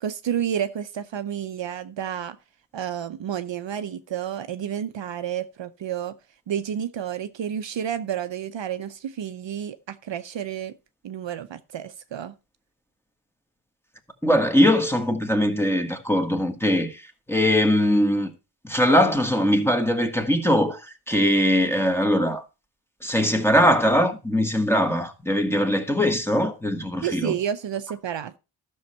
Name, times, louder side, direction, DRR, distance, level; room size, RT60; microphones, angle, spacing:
voice 1, 0.0-2.4 2.7-6.1 6.5-10.7 11.0-12.3 27.0-28.4, right 9 dB, 60° right, 0.7 m, -30 dB
voice 2, 14.2-17.0 17.3-18.3 18.6-22.4 23.0-27.3, equal, 5° left, 1.6 m, -21 dB
12.5 x 6.5 x 4.3 m
wide cardioid pair, 95°, 50 cm